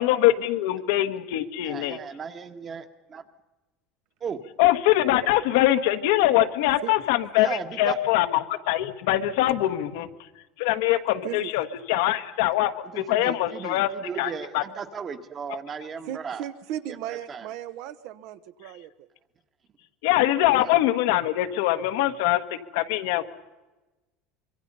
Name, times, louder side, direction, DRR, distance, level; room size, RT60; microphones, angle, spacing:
voice 1, 0.0-2.0 4.6-10.1 10.6-13.9 14.2-14.6 20.0-23.2, left 14 dB, 80° left, 8 dB, 1.5 m, -23 dB
voice 2, 1.6-2.8 3.1-3.2 4.2-4.4 7.4-8.0 12.8-16.5 16.9-17.5 20.5-20.7, right 6 dB, 25° right, 8 dB, 1.4 m, -36 dB
voice 3, 16.1-19.1, right 12 dB, 60° right, 13 dB, 1.1 m, -36 dB
25.5 x 23.5 x 5.5 m, 1.1 s
cardioid pair, 165°, 0 cm